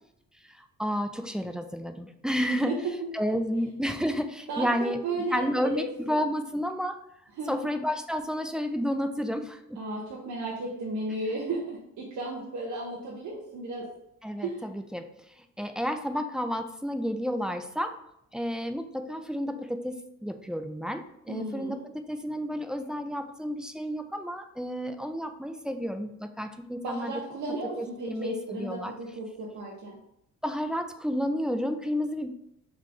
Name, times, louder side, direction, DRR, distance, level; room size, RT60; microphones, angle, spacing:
voice 1, 0.4-2.8 3.1-7.0 7.5-9.8 14.2-18.0 18.3-27.1 27.8-28.9 30.4-32.3, equal, 5° right, 7 dB, 0.3 m, -31 dB
voice 2, 4.5-5.9 7.4-7.7 9.8-13.9 14.4-14.6 21.3-21.8 26.8-30.0, right 2 dB, 70° right, -5 dB, 1.0 m, -34 dB
3.8 x 3.2 x 3.7 m, 0.78 s
cardioid pair, 90°, 30 cm